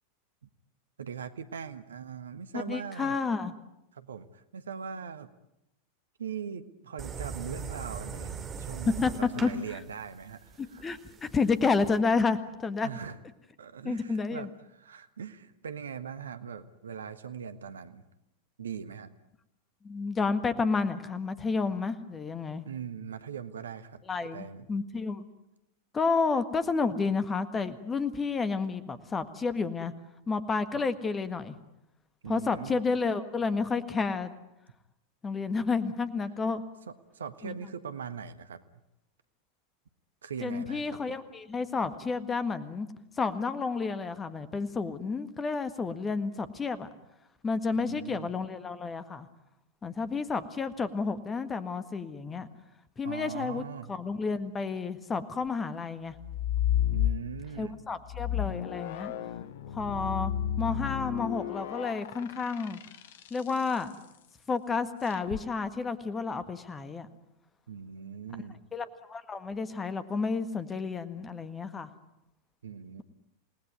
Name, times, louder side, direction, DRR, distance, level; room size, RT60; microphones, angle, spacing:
voice 1, 1.0-3.2 3.9-5.3 6.2-10.9 12.8-13.2 13.6-18.0 18.6-19.1 22.6-24.0 24.3-24.7 32.2-32.8 36.9-38.6 40.2-41.2 47.7-48.3 53.0-53.9 56.9-57.8 67.7-68.6 72.6-73.0, right 7 dB, 70° right, 11 dB, 1.4 m, -40 dB
voice 2, 2.5-3.5 8.8-9.1 9.4-9.8 10.6-12.9 13.8-14.5 19.8-22.7 24.0-25.3 25.9-29.9 30.3-31.5 32.2-34.3 35.2-36.6 37.4-37.5 40.4-42.9 43.2-46.9 47.4-49.3 49.8-52.5 53.0-56.1 57.6-59.1 59.7-60.3 60.6-62.8 63.3-63.9 64.5-67.1 68.7-71.9, left 4 dB, 15° left, 12 dB, 1.7 m, -30 dB
sound 1, 7.0-12.0, right 6 dB, 25° right, 2.7 m, -40 dB
sound 2, 56.2-57.6 58.1-63.6 65.1-65.4, left 11 dB, 55° left, 0.9 m, -32 dB
28.0 x 19.0 x 9.5 m, 0.87 s
figure-of-eight pair, 90°, 0 cm